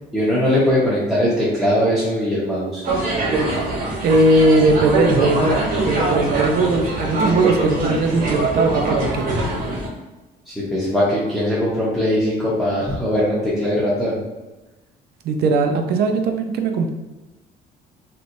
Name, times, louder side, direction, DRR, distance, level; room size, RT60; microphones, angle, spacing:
voice 1, 0.1-2.8 10.5-14.2, equal, ahead, -8 dB, 0.8 m, -20 dB
sound 1, 2.8-9.9, right 2 dB, 55° right, 1.0 m, -22 dB
voice 2, 4.0-9.3 15.2-16.9, right 2 dB, 70° right, 5 dB, 0.5 m, -19 dB
3.1 x 2.9 x 2.6 m, 1.1 s
cardioid pair, 110°, 17 cm